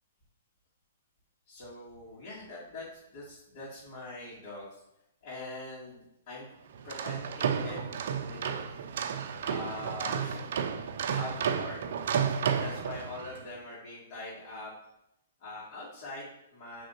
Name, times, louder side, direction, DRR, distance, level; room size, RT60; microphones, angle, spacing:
voice 1, 1.5-4.7 5.2-6.5 6.8-8.7 9.4-10.5 11.0-11.8 12.4-14.7 15.4-16.8, left 2 dB, 45° left, -8 dB, 2.9 m, -43 dB
sound 1, 6.7-13.4, right 7 dB, 55° right, 0.7 m, -32 dB
6.8 x 5.2 x 4.4 m, 0.83 s
figure-of-eight pair, 115°, 0 cm